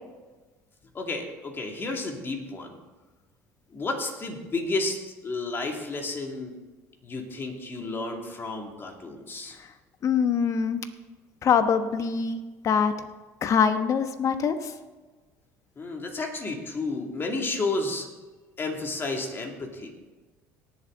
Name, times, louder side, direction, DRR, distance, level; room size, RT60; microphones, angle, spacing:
voice 1, 0.9-2.8 3.7-5.0 5.2-6.5 7.0-9.6 15.8-18.1 18.6-19.9, left 3 dB, 30° left, 2 dB, 2.5 m, -31 dB
voice 2, 10.0-10.8 11.4-12.9 13.4-14.7, left 6 dB, 45° left, 9 dB, 1.1 m, -24 dB
18.5 x 7.4 x 3.9 m, 1.2 s
supercardioid pair, 85°, 7 cm